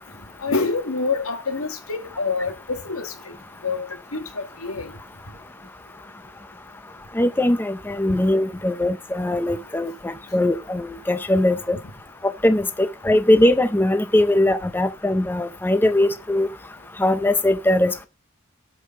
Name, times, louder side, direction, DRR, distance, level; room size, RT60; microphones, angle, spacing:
voice 1, 0.4-3.1 3.6-3.8 4.1-4.9, left 4 dB, 80° left, 2.1 m, -26 dB
voice 2, 7.1-11.8 12.2-16.5 17.0-18.1, left 1 dB, 10° left, 0.5 m, -20 dB
13.0 x 5.2 x 5.2 m
head